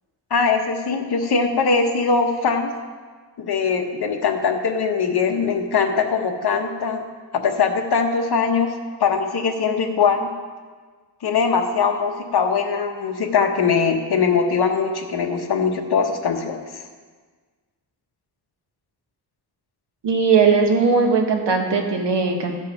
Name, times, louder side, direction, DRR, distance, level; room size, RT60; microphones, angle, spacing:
voice 1, 0.3-2.7 3.4-7.1 7.4-10.3 11.2-16.6, left 5 dB, 65° left, 4 dB, 1.1 m, -21 dB
voice 2, 20.0-22.5, right 5 dB, 85° right, 2 dB, 1.5 m, -18 dB
14.0 x 4.8 x 5.8 m, 1.5 s
wide cardioid pair, 155°, 41 cm